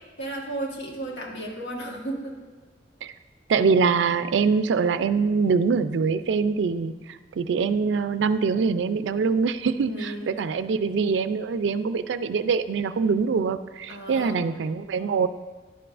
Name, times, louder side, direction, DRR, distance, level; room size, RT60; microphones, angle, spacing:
voice 1, 0.2-2.4 9.9-10.3 13.9-14.4, right 1 dB, 80° left, -1 dB, 1.4 m, -33 dB
voice 2, 3.5-6.9 7.4-15.3, right 5 dB, 85° right, 13 dB, 0.3 m, -24 dB
10.0 x 6.9 x 2.5 m, 1.3 s
head